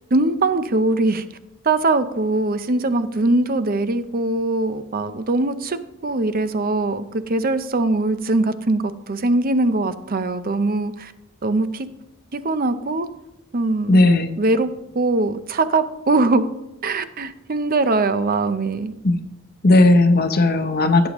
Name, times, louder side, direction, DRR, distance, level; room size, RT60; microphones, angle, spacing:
voice 1, 0.1-1.3 1.6-11.1 11.4-11.9 12.3-13.1 13.5-14.0 14.4-14.7 14.9-16.4 16.8-18.9, right 2 dB, 45° right, 12 dB, 0.7 m, -21 dB
voice 2, 13.9-14.3 19.0-19.2 19.6-21.1, left 2 dB, 45° left, 8 dB, 0.8 m, -15 dB
16.0 x 8.1 x 3.0 m, 0.91 s
head